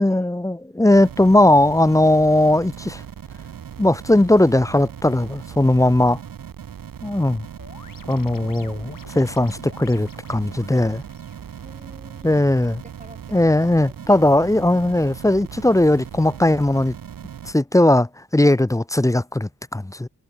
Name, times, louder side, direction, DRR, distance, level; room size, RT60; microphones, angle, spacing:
voice 1, 0.0-3.0 3.8-6.2 7.0-7.5 8.1-11.0 12.2-12.8 13.3-16.9 17.4-20.1, left 1 dB, 10° left, 0.5 m, -18 dB
sound 1, 0.9-17.5, right 8 dB, 80° right, 0.9 m, -38 dB
sound 2, 7.6-12.6, left 6 dB, 75° left, 1.8 m, -48 dB
voice 2, 11.6-12.4 12.8-14.3 18.5-18.6, right 2 dB, 20° right, 2.5 m, -47 dB
wide cardioid pair, 85°, 33 cm